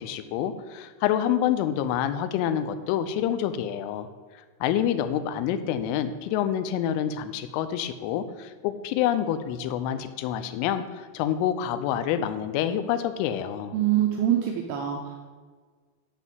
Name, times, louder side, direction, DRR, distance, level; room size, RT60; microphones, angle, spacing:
voice 1, 0.0-4.1 4.6-13.8, left 10 dB, 85° left, 10 dB, 3.1 m, -27 dB
voice 2, 13.7-15.1, right 11 dB, 85° right, 1 dB, 2.3 m, -24 dB
12.5 x 4.2 x 7.6 m, 1.5 s
omnidirectional pair, 5.6 m